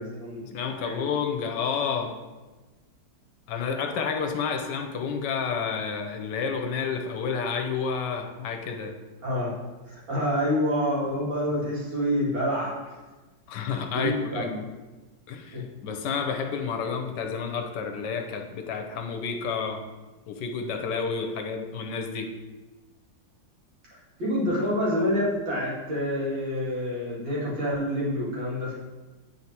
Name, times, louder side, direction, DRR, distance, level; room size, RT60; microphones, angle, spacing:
voice 1, 0.0-0.5 0.8-1.1 9.2-9.5 9.9-13.0 13.9-14.5 15.5-15.6 24.2-28.8, equal, 90° right, -8 dB, 3.1 m, -27 dB
voice 2, 0.5-2.2 3.5-8.9 13.5-14.5 15.3-19.8 20.3-22.3, left 6 dB, 75° left, 5 dB, 1.2 m, -30 dB
9.3 x 4.8 x 2.8 m, 1.2 s
omnidirectional pair, 2.0 m